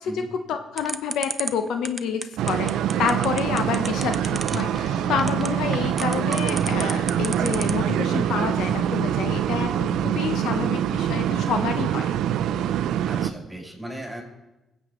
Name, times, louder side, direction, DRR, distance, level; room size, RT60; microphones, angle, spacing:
voice 1, 0.0-2.7 3.0-12.1, left 7 dB, 80° left, 7 dB, 0.7 m, -28 dB
sound 1, 0.8-7.9, right 4 dB, 30° right, 0.5 m, -32 dB
sound 2, 2.4-13.3, right 10 dB, 85° right, 0.4 m, -24 dB
sound 3, 2.6-8.6, left 2 dB, 45° left, 1.4 m, -43 dB
voice 2, 3.7-4.0 13.1-14.2, right 1 dB, ahead, -1 dB, 3.8 m, -37 dB
20.5 x 7.9 x 3.1 m, 1.0 s
cardioid pair, 90°, 0 cm